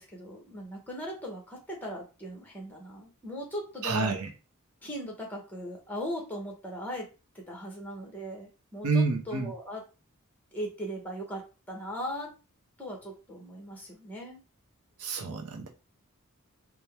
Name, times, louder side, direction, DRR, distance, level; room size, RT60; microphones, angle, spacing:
voice 1, 0.0-4.1 4.8-7.1 7.3-9.8 10.5-12.3 12.8-14.4, equal, 10° left, 0 dB, 1.1 m, -39 dB
voice 2, 3.8-4.3 8.8-9.5 15.0-15.7, right 4 dB, 80° right, 3 dB, 0.7 m, -28 dB
4.3 x 2.2 x 3.4 m, 0.32 s
head